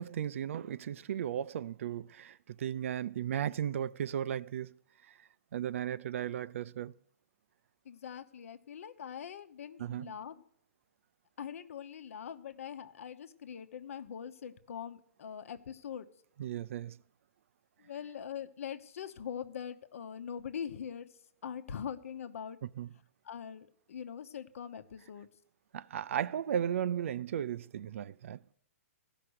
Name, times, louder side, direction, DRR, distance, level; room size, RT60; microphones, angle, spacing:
voice 1, 0.0-4.7 5.5-6.9 9.8-10.1 16.4-17.0 22.8-22.9 25.7-28.4, right 10 dB, 60° right, 0.4 m, -35 dB
voice 2, 7.8-10.4 11.4-16.1 17.8-21.1 21.4-22.6 23.2-25.3, left 8 dB, 65° left, 1.0 m, -42 dB
15.0 x 5.9 x 7.9 m
hypercardioid pair, 155°, 8 cm